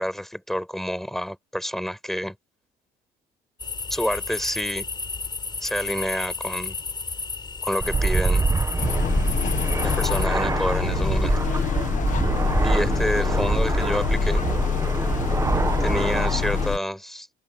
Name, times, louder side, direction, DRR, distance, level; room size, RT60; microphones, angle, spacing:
voice 1, 0.0-2.4 3.9-4.8 5.6-6.8 7.6-8.5 9.8-11.4 12.6-14.4 15.8-17.3, equal, ahead, 6.0 m, -28 dB
sound 1, 3.6-10.3, left 4 dB, 25° left, 4.1 m, -32 dB
Fixed-wing aircraft airplane, 7.8-16.7, right 3 dB, 20° right, 1.4 m, -25 dB
sound 2, 8.8-16.8, left 9 dB, 50° left, 1.3 m, -26 dB
open air
cardioid pair, 110°, 17 cm